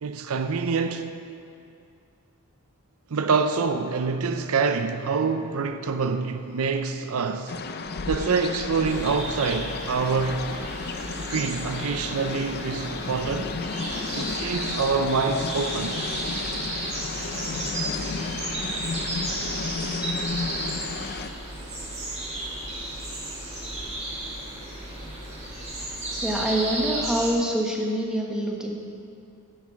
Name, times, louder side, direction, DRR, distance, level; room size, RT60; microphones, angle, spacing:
voice 1, 0.0-1.2 3.1-7.5 8.1-10.5 11.3-13.6 14.2-16.0, right 5 dB, 70° right, 0.5 m, -26 dB
sound 1, 7.5-21.3, left 4 dB, 45° left, 0.5 m, -33 dB
sound 2, 8.8-27.3, right 1 dB, 30° right, 2.7 m, -34 dB
voice 2, 26.2-28.7, right 1 dB, 5° right, 1.2 m, -25 dB
10.5 x 8.2 x 6.2 m
head